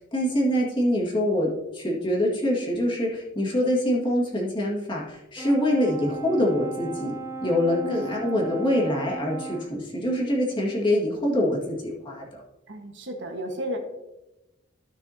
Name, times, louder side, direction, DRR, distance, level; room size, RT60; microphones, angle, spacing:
voice 1, 0.1-12.4, left 1 dB, 25° left, -3 dB, 2.0 m, -25 dB
Brass instrument, 5.4-9.8, right 3 dB, 15° right, 0.7 m, -36 dB
voice 2, 7.8-8.1 12.7-13.8, equal, 65° right, 2 dB, 1.5 m, -33 dB
13.5 x 6.1 x 2.8 m, 0.98 s
head